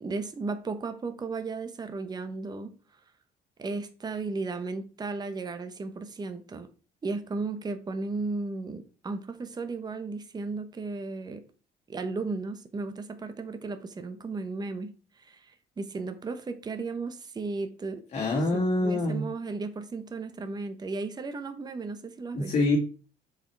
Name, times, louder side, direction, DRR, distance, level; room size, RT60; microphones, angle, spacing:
voice 1, 0.0-2.7 3.6-6.7 7.0-11.4 11.9-18.0 18.5-22.5, right 3 dB, 25° right, 9 dB, 0.9 m, -35 dB
voice 2, 18.1-19.2 22.3-22.8, left 2 dB, 45° left, -3 dB, 2.2 m, -25 dB
7.0 x 5.0 x 4.6 m, 0.38 s
cardioid pair, 110°, 17 cm